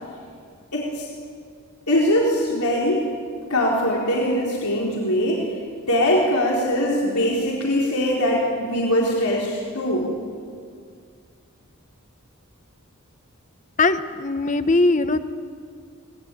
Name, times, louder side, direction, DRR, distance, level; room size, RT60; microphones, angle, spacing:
voice 1, 0.7-1.1 1.9-3.0 3.5-5.5 5.9-10.1, equal, 90° left, -3 dB, 4.0 m, -21 dB
voice 2, 13.8-15.2, left 3 dB, 35° left, 11 dB, 0.9 m, -20 dB
24.0 x 19.5 x 9.2 m, 2.1 s
head